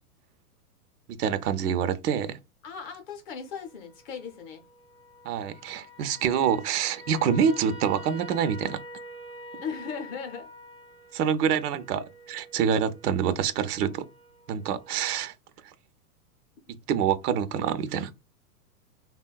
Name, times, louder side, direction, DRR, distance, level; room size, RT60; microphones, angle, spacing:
voice 1, 1.1-2.4 5.2-8.8 11.1-14.0 14.5-15.3 16.7-18.1, right 8 dB, 75° right, 0.6 m, -26 dB
voice 2, 2.6-4.6 9.6-10.5, left 6 dB, 30° left, 0.6 m, -37 dB
sound 1, 3.5-14.9, left 1 dB, 10° right, 0.3 m, -47 dB
3.5 x 2.2 x 2.2 m
hypercardioid pair, 135°, 46 cm